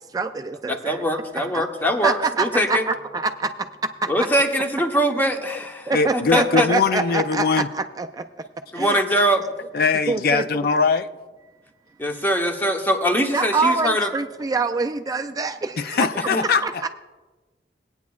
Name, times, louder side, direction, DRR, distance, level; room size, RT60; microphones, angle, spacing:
voice 1, 0.1-1.0 1.4-1.6 2.0-3.7 4.0-4.1 5.9-8.2 8.7-9.0 10.1-10.4 13.3-16.1 16.4-16.9, right 4 dB, 20° right, 6 dB, 0.3 m, -25 dB
voice 2, 0.7-2.9 4.1-6.7 8.7-9.5 12.0-14.1 16.1-16.4, equal, 10° left, 3 dB, 0.9 m, -22 dB
voice 3, 5.9-7.7 9.7-11.1 15.8-16.6, left 5 dB, 55° left, 11 dB, 0.4 m, -21 dB
19.0 x 9.3 x 2.3 m, 1.2 s
head